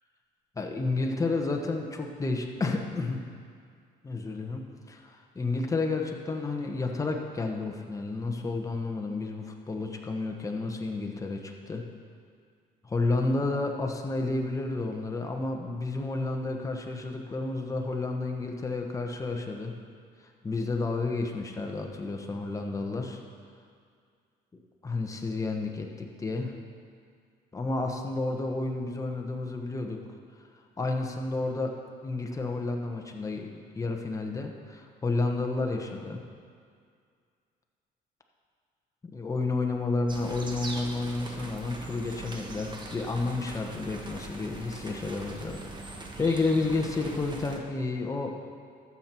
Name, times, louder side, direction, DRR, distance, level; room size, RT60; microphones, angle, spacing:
voice 1, 0.6-3.2 4.0-11.8 12.8-19.7 20.4-23.2 24.8-26.5 27.5-30.0 30.8-31.8 32.0-36.2 39.0-48.3, left 3 dB, 20° left, 2 dB, 1.1 m, -31 dB
sound 1, 40.1-47.6, right 2 dB, 25° right, 1.2 m, -41 dB
13.0 x 7.2 x 4.5 m, 2.2 s
cardioid pair, 110°, 17 cm